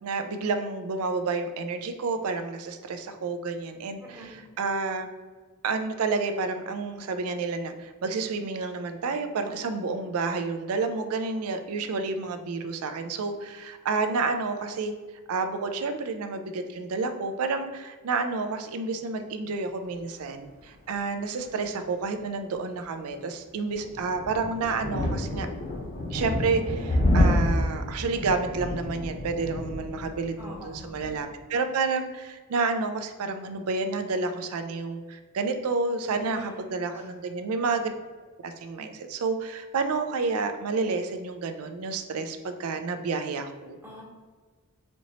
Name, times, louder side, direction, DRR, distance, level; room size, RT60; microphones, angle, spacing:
voice 1, 0.0-5.1 5.6-14.9 15.3-25.5 26.1-37.9 38.4-43.8, right 4 dB, 75° right, 7 dB, 0.4 m, -30 dB
voice 2, 4.0-4.4 30.4-30.9 36.1-37.1 43.8-44.0, right 1 dB, 10° right, -3 dB, 0.9 m, -44 dB
sound 1, 23.7-31.2, left 1 dB, 40° left, 0.8 m, -28 dB
4.3 x 2.9 x 2.8 m, 1.4 s
head